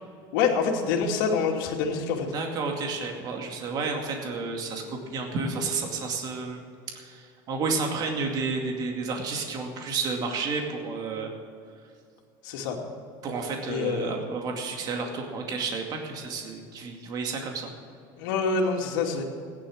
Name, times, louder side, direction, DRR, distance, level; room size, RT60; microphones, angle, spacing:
voice 1, 0.3-2.3 12.4-12.8 13.7-14.1 18.2-19.2, left 5 dB, 75° left, 1 dB, 2.7 m, -26 dB
voice 2, 2.3-4.8 5.1-6.6 6.9-11.3 13.2-17.7, right 4 dB, 35° right, 2 dB, 2.3 m, -31 dB
16.0 x 11.0 x 6.5 m, 2.4 s
supercardioid pair, 145°, 11 cm